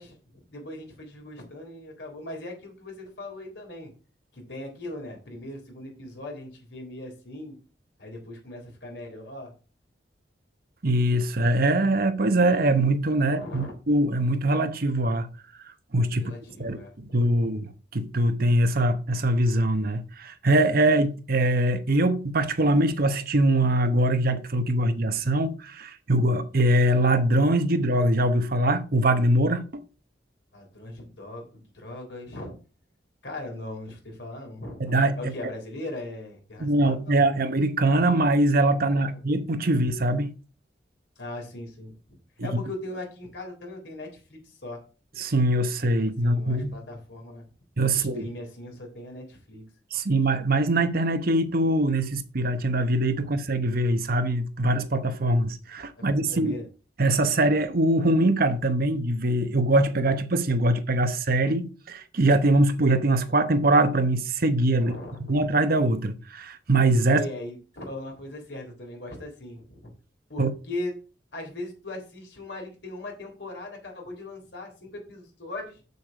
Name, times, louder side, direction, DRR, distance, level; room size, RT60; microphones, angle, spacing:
voice 1, 0.0-3.9 4.3-7.6 8.0-9.5 13.2-13.7 16.2-17.6 30.5-32.5 33.2-37.2 38.8-39.2 41.1-44.8 46.2-47.4 47.8-49.6 53.1-53.4 56.0-56.6 64.8-65.5 67.1-69.9 70.3-70.9 71.3-75.8, left 1 dB, 70° left, 3.5 m, -39 dB
voice 2, 10.8-15.3 15.9-16.3 16.6-16.8 17.1-29.6 34.8-35.3 36.6-40.3 42.4-42.5 45.2-46.8 47.8-48.3 49.9-56.6 57.0-64.9 65.3-67.2 70.4-70.5, right 1 dB, 55° right, 0.9 m, -23 dB
6.8 x 6.8 x 4.7 m
head